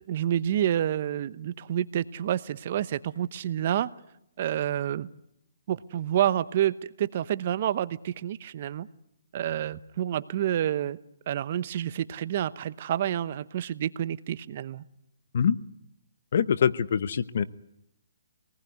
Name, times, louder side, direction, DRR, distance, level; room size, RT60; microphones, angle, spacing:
voice 1, 0.0-3.9 4.4-5.1 5.7-8.9 9.3-11.0 11.3-14.8, right 11 dB, 45° right, 15 dB, 1.0 m, -28 dB
voice 2, 16.3-17.4, left 7 dB, 60° left, 15 dB, 1.0 m, -24 dB
24.5 x 19.0 x 9.5 m, 0.79 s
hypercardioid pair, 150°, 0 cm